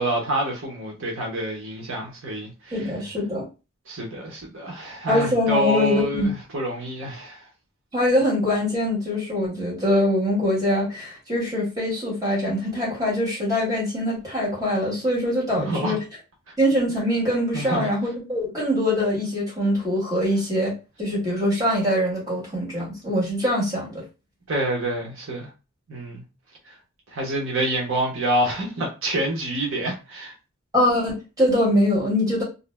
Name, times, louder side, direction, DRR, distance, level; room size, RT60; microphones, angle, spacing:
voice 1, 0.0-2.9 3.9-7.4 15.6-16.0 17.5-17.9 24.5-25.5 25.9-26.2 26.7-26.8 27.1-30.3, right 1 dB, 65° right, 0.8 m, -27 dB
voice 2, 2.7-3.4 5.1-6.3 7.9-16.0 16.6-20.7 21.0-24.0 30.7-32.4, left 1 dB, 15° right, 1.3 m, -23 dB
2.6 x 2.0 x 3.2 m
head